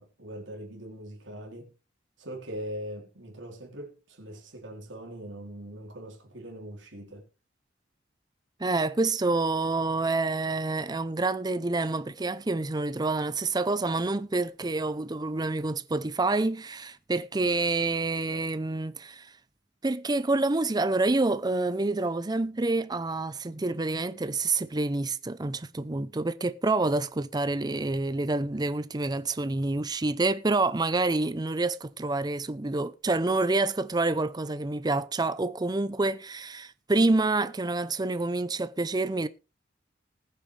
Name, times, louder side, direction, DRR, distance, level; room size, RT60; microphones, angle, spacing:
voice 1, 0.0-1.7 2.2-7.3, equal, 85° right, 3.8 m, -41 dB
voice 2, 8.6-19.3 19.8-39.3, right 2 dB, 20° right, 0.6 m, -27 dB
20.0 x 7.2 x 3.3 m
head